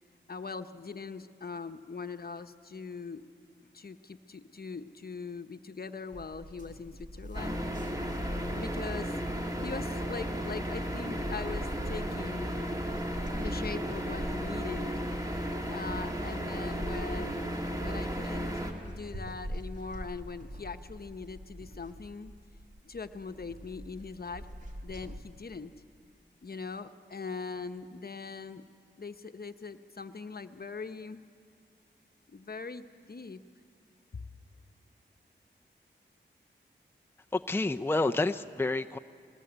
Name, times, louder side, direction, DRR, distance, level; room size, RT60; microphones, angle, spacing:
voice 1, 0.3-3.2 3.6-7.6 8.5-9.2 9.6-12.6 13.3-14.9 15.7-22.3 22.8-24.5 24.8-25.7 26.4-28.6 29.0-31.2 32.3-33.4 34.1-34.2, left 4 dB, 50° left, 1.0 m, -41 dB
sound 1, 6.1-25.2, equal, 40° right, 2.6 m, -44 dB
sound 2, 7.3-18.7, equal, 20° right, 2.7 m, -34 dB
voice 2, 37.3-39.0, left 2 dB, 10° left, 0.6 m, -29 dB
21.5 x 19.5 x 8.1 m
cardioid pair, 50°, 20 cm